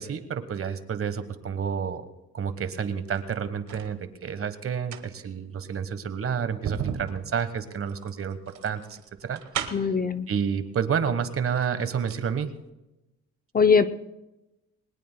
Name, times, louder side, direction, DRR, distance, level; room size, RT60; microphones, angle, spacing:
voice 1, 0.0-2.1 2.3-9.4 10.3-12.5, right 7 dB, 45° right, 11 dB, 1.3 m, -30 dB
sound 1, 3.0-3.9 4.7-10.1 11.0-11.1 11.5-12.3 12.6-12.7, right 8 dB, 70° right, 1.3 m, -37 dB
voice 2, 9.7-10.3 13.5-13.9, left 5 dB, 30° left, 11 dB, 0.6 m, -20 dB
21.5 x 19.5 x 2.2 m, 0.98 s
cardioid pair, 90°, 30 cm